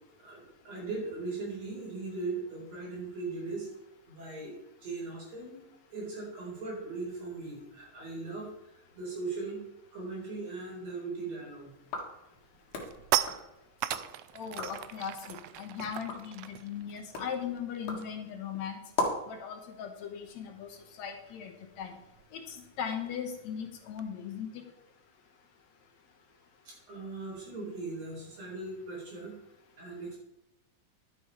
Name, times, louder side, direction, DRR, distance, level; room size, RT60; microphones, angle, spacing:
voice 1, 0.2-3.7 4.1-4.5 4.8-5.6 5.9-9.6 9.9-11.7 26.7-29.4 29.8-30.2, right 3 dB, 60° right, -3 dB, 5.5 m, -39 dB
sound 1, 11.7-12.0 12.4-18.3 18.6-18.8 19.1-24.1, right 13 dB, 90° right, 1.4 m, -38 dB
sound 2, 11.8-14.1 14.4-14.9 15.4-19.4, left 3 dB, 85° left, 3.3 m, -39 dB
voice 2, 14.3-18.8 19.3-21.5 21.8-21.9 22.3-24.6, left 7 dB, 70° left, 5 dB, 2.3 m, -38 dB
11.5 x 7.7 x 4.8 m, 0.90 s
omnidirectional pair, 3.4 m